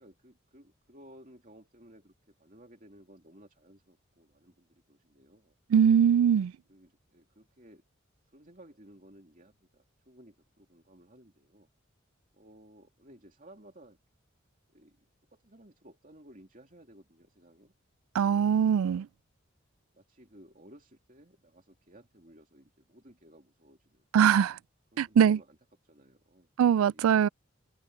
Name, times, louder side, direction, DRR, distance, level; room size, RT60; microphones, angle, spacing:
voice 1, 0.0-5.5 6.7-7.8 8.3-11.7 12.3-14.0 14.7-15.0 15.3-17.7 18.9-19.1 19.9-24.0 24.9-25.6 25.8-26.5, right 1 dB, 40° right, 3.0 m, -56 dB
voice 2, 5.7-6.5 18.1-19.1 24.1-24.6 25.0-25.4 26.6-27.3, right 8 dB, 80° right, 0.3 m, -22 dB
head